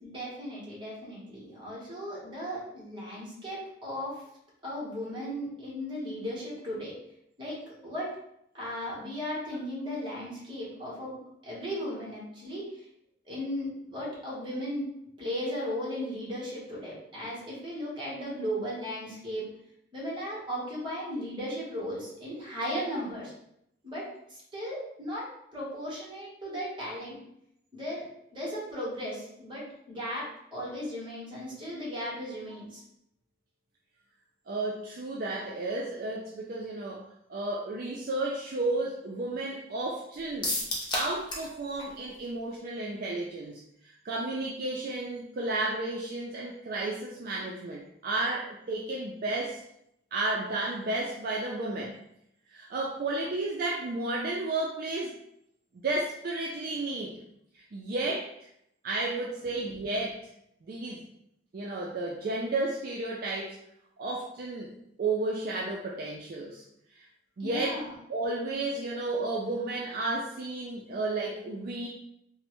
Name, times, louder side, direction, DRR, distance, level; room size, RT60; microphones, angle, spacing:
voice 1, 0.0-4.2 4.6-6.9 7.4-8.2 8.5-12.9 13.2-14.9 15.2-19.5 19.9-23.3 23.8-27.2 27.7-28.0 28.3-32.8 67.4-67.9, equal, 25° right, -5 dB, 1.1 m, -36 dB
voice 2, 34.5-40.6 40.9-49.6 50.1-51.9 52.5-55.1 55.7-57.2 57.5-58.5 58.8-60.2 60.7-61.0 61.5-63.6 64.0-64.7 65.0-66.6 66.9-67.1 67.4-67.8 68.1-71.9, right 2 dB, 50° right, -2 dB, 0.3 m, -32 dB
sound 1, 40.4-41.5 41.8-41.9 42.2-42.3, left 2 dB, 25° left, 0.5 m, -31 dB
3.2 x 2.0 x 2.9 m, 0.76 s
head